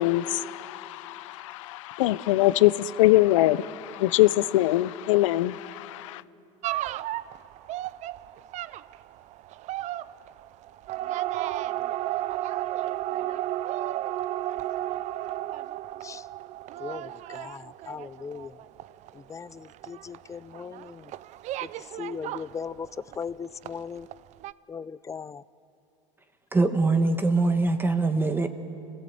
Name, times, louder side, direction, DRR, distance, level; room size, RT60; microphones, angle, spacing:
voice 1, 0.0-6.2, left 16 dB, 80° left, 18 dB, 0.7 m, -23 dB
sound 1, 6.6-23.3 23.6-24.2 24.4-24.5, right 14 dB, 45° right, 0.5 m, -33 dB
voice 2, 16.8-18.5 19.3-21.0 22.0-22.9 23.2-24.1 24.7-25.4, left 6 dB, 20° left, 19 dB, 0.5 m, -38 dB
voice 3, 26.5-28.5, right 3 dB, 15° right, 7 dB, 1.4 m, -23 dB
27.0 x 16.5 x 7.9 m, 2.8 s
supercardioid pair, 105°, 16 cm